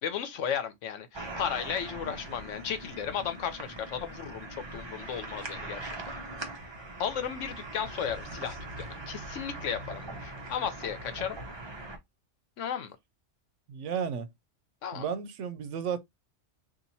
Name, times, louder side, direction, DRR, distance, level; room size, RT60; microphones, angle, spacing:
voice 1, 0.0-6.1 7.0-11.4 12.6-13.0 14.8-15.0, left 8 dB, 80° left, 1.1 m, -35 dB
sound 1, 1.1-12.0, right 2 dB, 30° right, 0.5 m, -41 dB
voice 2, 13.7-14.3 14.9-16.0, right 7 dB, 80° right, 0.9 m, -33 dB
2.9 x 2.6 x 3.9 m
omnidirectional pair, 1.3 m